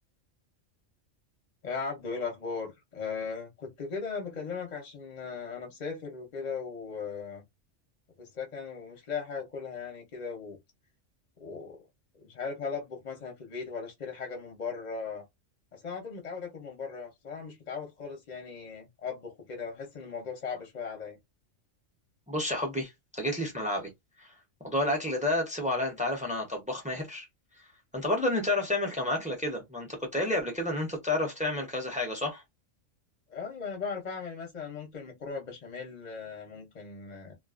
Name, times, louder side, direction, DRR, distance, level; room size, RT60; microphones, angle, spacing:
voice 1, 1.6-7.4 8.2-10.6 11.4-11.9 12.1-15.2 15.7-21.2 33.3-37.3, left 5 dB, 45° left, 0.6 m, -38 dB
voice 2, 22.3-23.9 24.2-24.3 24.6-27.3 27.9-32.4, left 1 dB, 10° right, 0.5 m, -30 dB
2.4 x 2.3 x 2.4 m
omnidirectional pair, 1.3 m